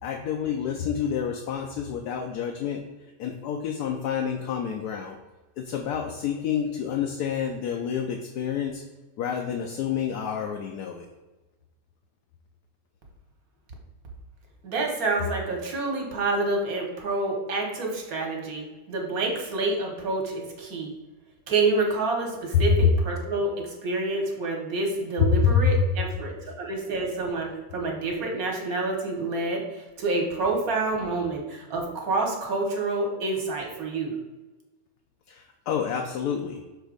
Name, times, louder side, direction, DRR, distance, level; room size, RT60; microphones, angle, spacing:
voice 1, 0.0-2.8 3.2-5.2 5.6-8.8 9.2-11.1 22.5-22.7 25.3-25.6 35.3-36.6, left 7 dB, 70° left, 2 dB, 1.1 m, -28 dB
voice 2, 14.6-20.9 21.5-34.1, right 3 dB, 60° right, 1 dB, 1.6 m, -28 dB
6.3 x 3.0 x 5.0 m, 1.2 s
omnidirectional pair, 1.9 m